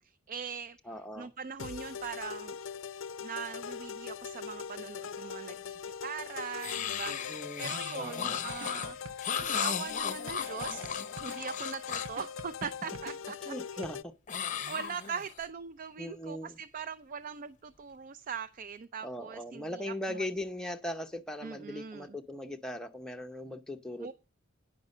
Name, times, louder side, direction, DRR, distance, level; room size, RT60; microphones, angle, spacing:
voice 1, 0.0-0.8 1.1-2.6 3.2-13.9 14.7-20.3 21.4-22.2 24.0-24.1, right 6 dB, 45° right, 0.4 m, -41 dB
voice 2, 0.9-1.3 7.1-7.7 7.9-8.4 13.4-14.1 16.0-16.6 19.0-24.1, left 1 dB, 5° left, 0.7 m, -39 dB
sound 1, 1.6-14.0, left 7 dB, 80° left, 0.4 m, -42 dB
sound 2, 6.6-12.2 14.3-15.5, left 8 dB, 40° left, 0.6 m, -36 dB
sound 3, 8.5-9.6 10.3-11.4 12.1-13.2 13.8-13.9, right 3 dB, 90° right, 0.9 m, -47 dB
9.7 x 6.1 x 5.4 m
head